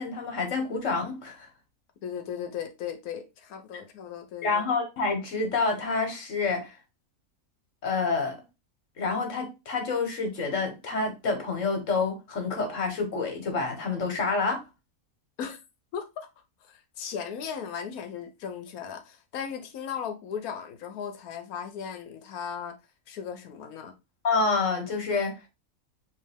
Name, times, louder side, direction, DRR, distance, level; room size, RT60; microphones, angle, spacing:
voice 1, 0.0-1.5 4.4-6.8 7.8-8.4 9.0-14.6 24.2-25.3, left 4 dB, 60° left, 1.5 m, -28 dB
voice 2, 2.0-4.6 15.4-15.6 15.9-16.3 16.6-22.7 23.1-23.9, left 7 dB, 75° left, 1.2 m, -37 dB
3.3 x 3.1 x 3.4 m
omnidirectional pair, 1.6 m